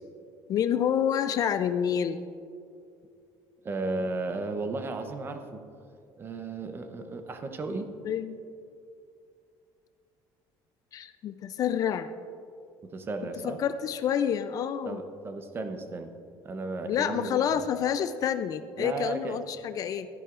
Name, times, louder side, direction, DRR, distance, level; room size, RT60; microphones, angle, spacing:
voice 1, 0.5-2.2 8.0-8.4 10.9-12.1 13.4-15.0 16.9-20.1, left 8 dB, 45° left, 11 dB, 0.4 m, -28 dB
voice 2, 3.6-5.6 6.2-7.9 12.8-13.6 14.9-16.1 16.4-17.7 18.8-19.4, right 3 dB, 25° right, 7 dB, 0.7 m, -34 dB
13.0 x 10.5 x 2.5 m, 2.4 s
cardioid pair, 140°, 8 cm